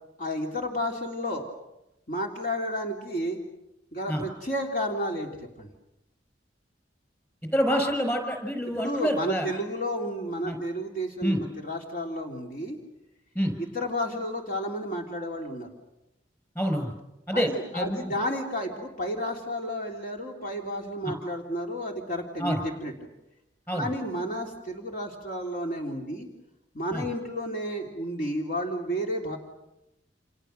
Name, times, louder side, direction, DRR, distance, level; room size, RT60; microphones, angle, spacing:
voice 1, 0.2-1.4 2.1-3.4 3.9-5.3 5.6-5.7 8.7-12.8 13.6-15.7 17.3-22.9 23.7-26.3 26.7-29.4, equal, 50° left, 1 dB, 3.4 m, -31 dB
voice 2, 7.5-9.5 10.4-10.6 11.2-11.4 13.4-13.5 16.6-16.9 17.3-17.5 17.7-18.1 22.4-22.6 23.7-23.9 26.9-27.0, equal, 10° left, 6 dB, 5.7 m, -27 dB
30.0 x 27.5 x 6.7 m, 0.91 s
head